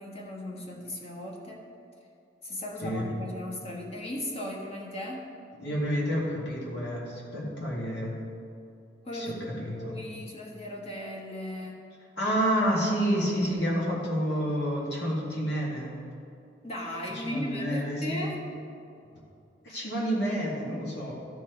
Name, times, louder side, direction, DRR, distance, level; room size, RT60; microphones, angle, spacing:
voice 1, 0.0-1.6 2.4-5.2 9.0-11.8 16.6-18.4 19.7-19.8, left 1 dB, 35° left, -2 dB, 1.4 m, -37 dB
voice 2, 5.6-8.1 9.1-10.0 12.2-15.9 17.2-18.3 19.6-21.1, equal, 70° left, -5 dB, 2.1 m, -29 dB
13.5 x 4.6 x 4.5 m, 2.5 s
head